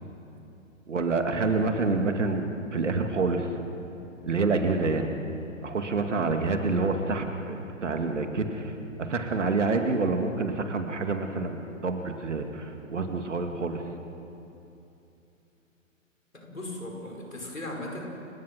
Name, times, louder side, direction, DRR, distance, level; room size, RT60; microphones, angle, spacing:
voice 1, 0.9-3.5 4.2-5.1 5.6-8.7 9.0-13.8, right 3 dB, 65° right, 5 dB, 2.4 m, -27 dB
voice 2, 16.3-18.0, left 1 dB, 80° left, 0 dB, 5.5 m, -37 dB
29.5 x 17.0 x 6.1 m, 2.8 s
figure-of-eight pair, 125°, 39 cm